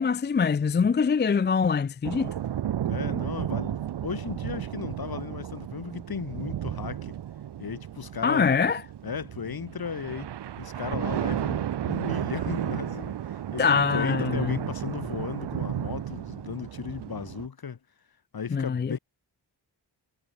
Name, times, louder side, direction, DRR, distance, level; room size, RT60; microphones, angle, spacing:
voice 1, 0.0-2.3 8.2-8.8 13.6-14.6 18.5-19.0, left 5 dB, 25° left, 0.4 m, -24 dB
sound 1, 2.0-17.5, right 11 dB, 65° right, 0.7 m, -33 dB
voice 2, 2.9-7.1 7.6-8.5 9.0-10.3 10.6-17.8 18.3-19.0, left 6 dB, 55° left, 1.7 m, -36 dB
wide cardioid pair, 130°, 44 cm